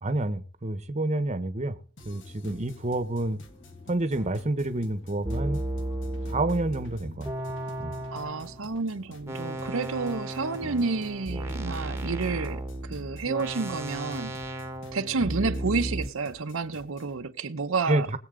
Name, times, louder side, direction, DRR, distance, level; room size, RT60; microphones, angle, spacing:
voice 1, 0.0-1.8 2.0-3.4 3.9-5.6 6.3-7.3 7.8-7.9 10.6-10.8 15.2-15.3 17.9-18.2, right 2 dB, 35° right, 1.0 m, -28 dB
sound 1, 2.0-17.2, left 2 dB, 60° left, 1.6 m, -52 dB
sound 2, 2.0-15.2, left 1 dB, 25° left, 1.6 m, -53 dB
sound 3, 4.1-4.4 5.2-8.6 9.3-16.1, right 1 dB, 15° right, 1.1 m, -34 dB
voice 2, 8.1-14.4 14.9-18.1, right 4 dB, 75° right, 0.8 m, -30 dB
20.5 x 7.8 x 3.8 m
head